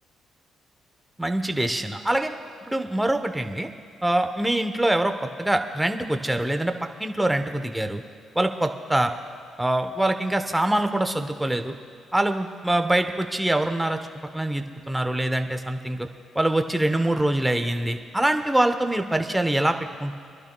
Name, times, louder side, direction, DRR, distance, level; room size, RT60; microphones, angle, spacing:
voice 1, 1.2-2.3 2.7-3.7 4.0-6.7 7.0-8.0 8.3-9.1 9.6-11.7 12.1-14.0 14.3-16.1 16.3-20.2, right 1 dB, 5° right, 6 dB, 0.8 m, -24 dB
25.0 x 11.5 x 2.3 m, 2.3 s
cardioid pair, 90°, 0 cm